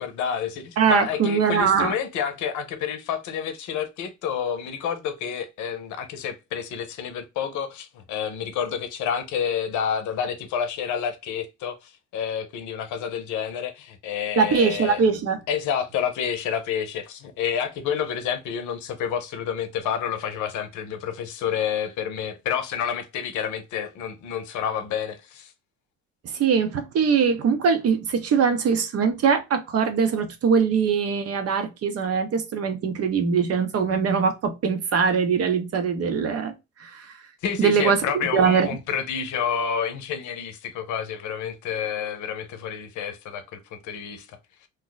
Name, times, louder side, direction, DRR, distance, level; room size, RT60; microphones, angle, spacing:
voice 1, 0.0-15.0 15.5-25.5 37.4-44.3, left 8 dB, 60° left, 0.7 m, -29 dB
voice 2, 0.8-1.9 14.4-15.4 26.3-36.5 36.8-37.1 37.6-38.0 38.3-38.8, right 6 dB, 45° right, 0.7 m, -22 dB
2.7 x 2.1 x 3.9 m
supercardioid pair, 70°, 34 cm